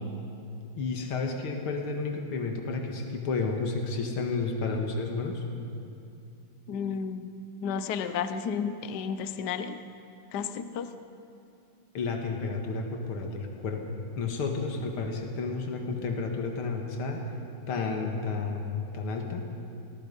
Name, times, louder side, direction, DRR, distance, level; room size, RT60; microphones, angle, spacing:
voice 1, 0.7-5.4 11.9-13.8 14.2-17.2 17.7-19.4, left 4 dB, 75° left, 3 dB, 2.6 m, -31 dB
voice 2, 6.7-7.3 7.6-9.8 10.3-10.9, left 6 dB, 60° left, 10 dB, 1.3 m, -32 dB
27.0 x 20.0 x 5.5 m, 2.5 s
omnidirectional pair, 2.4 m